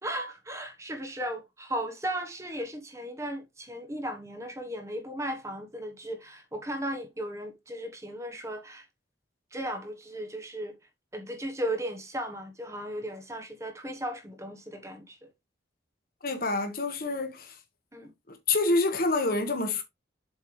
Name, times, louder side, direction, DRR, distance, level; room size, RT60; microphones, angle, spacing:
voice 1, 0.0-8.8 9.5-10.8 11.1-15.3 17.9-18.1, right 1 dB, 15° right, 1.2 m, -36 dB
voice 2, 16.2-17.6 18.3-19.8, left 3 dB, 45° left, 1.4 m, -27 dB
7.4 x 5.4 x 3.2 m
head